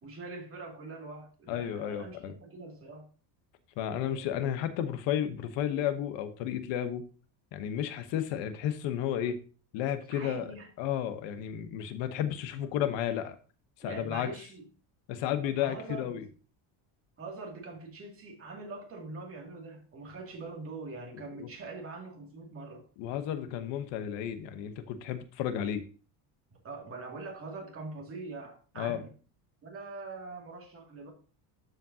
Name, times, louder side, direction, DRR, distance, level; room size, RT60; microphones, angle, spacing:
voice 1, 0.0-3.1 10.1-10.7 13.8-14.7 15.6-16.2 17.2-22.8 26.6-29.1 29.6-31.1, right 3 dB, 30° right, 2.4 m, -43 dB
voice 2, 1.5-2.4 3.8-7.1 7.5-9.4 9.7-10.5 10.8-13.4 13.8-14.3 15.1-16.2 21.4-21.5 23.0-25.8 28.8-29.0, left 10 dB, 70° left, 1.1 m, -32 dB
13.0 x 5.2 x 2.8 m
cardioid pair, 155°, 45 cm